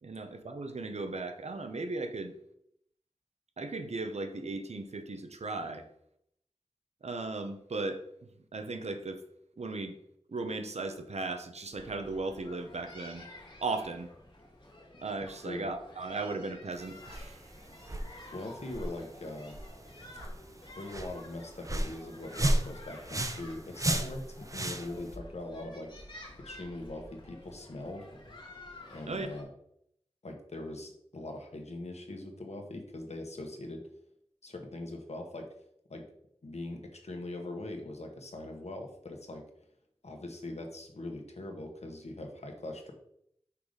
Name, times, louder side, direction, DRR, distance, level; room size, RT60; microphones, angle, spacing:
voice 1, 0.0-2.3 3.6-5.9 7.0-8.0 8.5-9.2 9.6-10.0 10.3-13.2 13.6-14.1 15.0-17.4 29.1-29.3, right 3 dB, 85° right, 7 dB, 0.8 m, -36 dB
sound 1, 11.7-29.4, left 1 dB, 45° left, 1.7 m, -51 dB
sound 2, 16.7-25.2, right 1 dB, 30° right, 0.7 m, -35 dB
voice 2, 18.3-19.5 20.8-25.9 26.4-28.1 28.9-29.5 30.2-33.9 34.4-35.5 35.9-36.0 36.4-39.4 40.0-42.9, left 2 dB, 80° left, 3 dB, 1.3 m, -41 dB
5.6 x 4.0 x 5.0 m, 0.72 s
wide cardioid pair, 60°, 11 cm